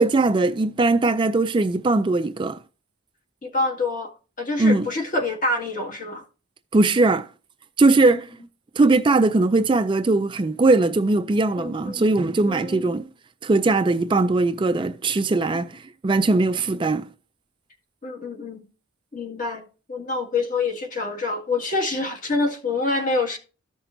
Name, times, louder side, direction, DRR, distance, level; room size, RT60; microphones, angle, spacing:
voice 1, 0.0-2.6 4.6-4.9 6.7-7.3 7.8-8.3 8.8-13.1 13.4-17.1, right 3 dB, 25° right, 0.3 m, -20 dB
voice 2, 3.4-4.1 4.4-6.2 8.0-8.1 11.6-12.0 12.5-12.8 18.0-18.6 19.1-19.6 19.9-23.4, left 3 dB, 40° left, 2.0 m, -26 dB
14.0 x 5.9 x 2.6 m
head